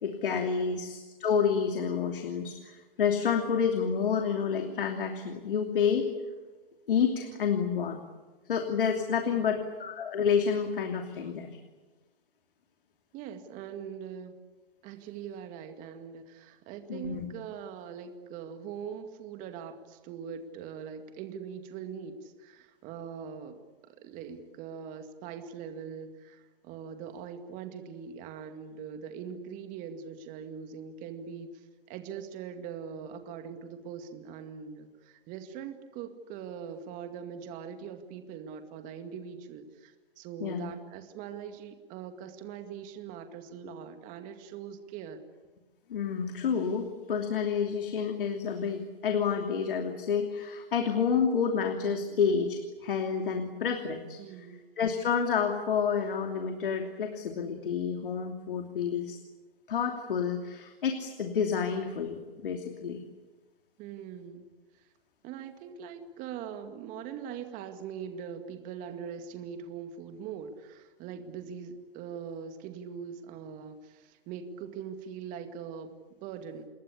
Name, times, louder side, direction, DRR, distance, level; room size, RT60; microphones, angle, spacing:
voice 1, 0.0-6.1 6.9-8.0 8.5-11.5 16.9-17.3 40.4-40.7 45.9-54.2 54.8-59.2 59.7-63.0, left 6 dB, 65° left, 5 dB, 2.9 m, -29 dB
voice 2, 9.2-9.5 13.1-14.3 14.8-45.2 54.2-54.6 63.8-64.5 65.2-75.9 76.2-76.6, right 7 dB, 25° right, 7 dB, 2.2 m, -42 dB
28.5 x 21.5 x 8.5 m, 1.3 s
hypercardioid pair, 135°, 29 cm